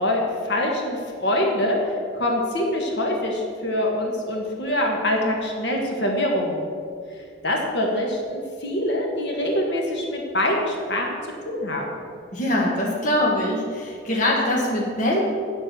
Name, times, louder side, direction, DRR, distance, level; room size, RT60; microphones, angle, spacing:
voice 1, 0.0-6.6 7.4-11.1 11.4-12.0, left 1 dB, 65° left, 0 dB, 1.6 m, -24 dB
voice 2, 12.3-15.2, left 1 dB, 40° left, -2 dB, 1.5 m, -23 dB
8.7 x 7.3 x 6.7 m, 2.3 s
head